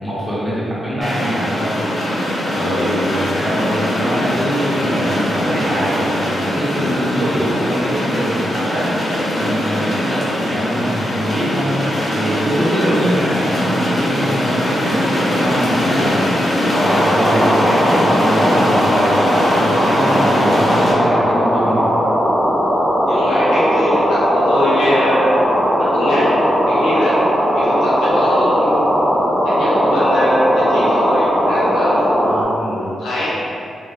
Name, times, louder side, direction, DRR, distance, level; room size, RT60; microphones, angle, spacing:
voice 1, 0.0-1.7 2.5-9.1 9.3-21.9 32.2-32.9, equal, 15° right, -9 dB, 1.0 m, -23 dB
sound 1, 1.0-20.9, left 1 dB, 55° left, 0.7 m, -21 dB
voice 2, 2.5-2.9 23.1-25.3 25.8-26.4 26.7-27.2 27.5-28.8 29.4-32.1 32.6-33.3, left 1 dB, 90° left, -8 dB, 0.6 m, -21 dB
sound 2, 16.7-32.4, equal, 10° left, 0.5 m, -17 dB
2.6 x 2.0 x 2.3 m, 2.5 s
cardioid pair, 55°, 0 cm